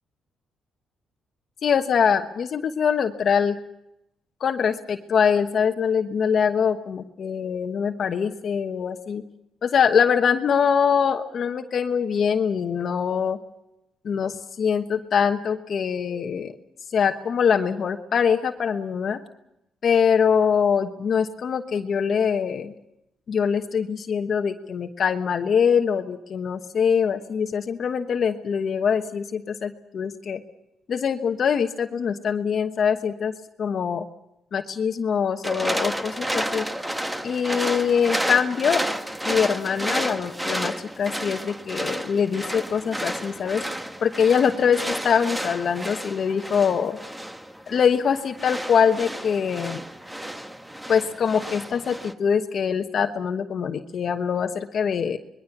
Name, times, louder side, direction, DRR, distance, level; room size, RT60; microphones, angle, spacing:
voice 1, 1.6-3.6 4.4-9.2 9.6-13.4 14.0-16.5 16.9-19.2 19.8-22.7 23.3-30.4 30.9-33.3 33.6-34.1 34.5-36.7 37.2-38.8 39.2-43.6 44.0-47.0 47.7-49.8 50.9-55.2, left 7 dB, 55° left, 6 dB, 1.1 m, -23 dB
sound 1, 35.4-52.1, right 1 dB, 10° right, 1.3 m, -31 dB
25.5 x 21.0 x 6.0 m, 0.86 s
cardioid pair, 90°, 0 cm